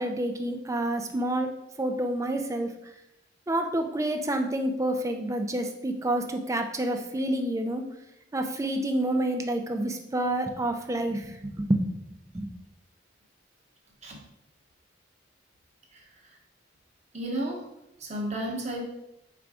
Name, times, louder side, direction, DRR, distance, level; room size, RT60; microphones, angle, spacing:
voice 1, 0.0-1.5 1.8-2.7 3.5-7.9 8.3-11.8 12.3-12.5, right 1 dB, 15° right, 5 dB, 0.3 m, -28 dB
voice 2, 17.1-17.6 18.0-18.8, right 1 dB, 35° right, -1 dB, 0.9 m, -32 dB
4.4 x 2.5 x 4.7 m, 0.89 s
head